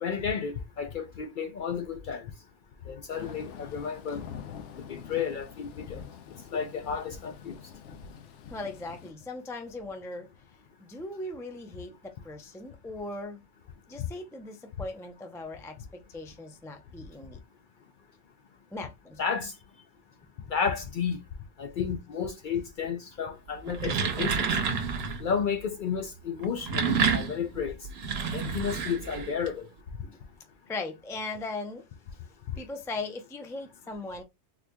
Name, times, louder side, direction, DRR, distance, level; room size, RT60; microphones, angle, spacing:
voice 1, 0.0-2.2 2.9-4.2 4.9-6.0 6.5-7.6 19.2-19.5 20.5-21.2 21.6-24.5 25.2-27.8 28.3-29.7, left 6 dB, 60° left, 0.6 m, -32 dB
Thunder / Rain, 3.1-9.1, left 8 dB, 90° left, 0.9 m, -45 dB
voice 2, 8.5-10.3 10.8-13.4 13.9-17.4 18.7-19.3 30.0-30.2 30.7-31.8 32.5-34.2, left 2 dB, 5° left, 0.3 m, -39 dB
sound 1, 23.6-25.3 26.4-29.5, right 6 dB, 65° right, 0.9 m, -29 dB
3.8 x 3.0 x 2.2 m
omnidirectional pair, 1.2 m